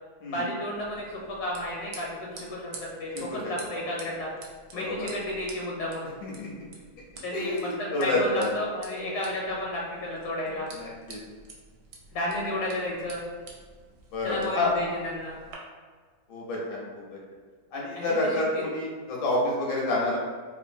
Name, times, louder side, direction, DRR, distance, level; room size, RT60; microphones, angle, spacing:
voice 1, 0.3-4.3 4.7-6.1 7.2-10.7 12.1-13.2 14.2-15.4 17.9-18.2 18.5-18.7, left 1 dB, 80° left, -3 dB, 1.3 m, -32 dB
sound 1, 0.7-15.6, right 3 dB, 75° right, 1.1 m, -49 dB
voice 2, 4.7-5.1 6.2-6.6 7.3-8.5 10.7-11.2 14.1-14.7 16.3-17.2 17.7-20.2, left 2 dB, 50° left, -4 dB, 0.6 m, -29 dB
2.9 x 2.3 x 2.6 m, 1.5 s
omnidirectional pair, 1.7 m